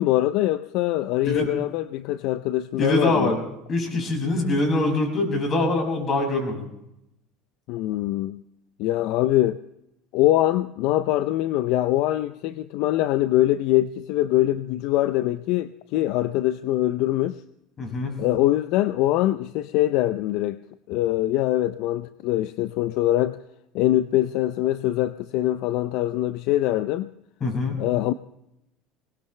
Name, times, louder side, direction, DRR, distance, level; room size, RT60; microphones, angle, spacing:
voice 1, 0.0-3.3 7.7-8.4 8.8-9.6 10.1-17.4 18.2-20.6 20.9-23.4 23.7-27.1 27.8-28.1, left 14 dB, 65° left, 13 dB, 0.5 m, -23 dB
voice 2, 2.8-3.4 3.7-6.7 17.8-18.2 27.4-27.8, left 2 dB, 35° left, 3 dB, 6.2 m, -24 dB
20.5 x 19.0 x 3.3 m, 0.83 s
supercardioid pair, 100°, 0 cm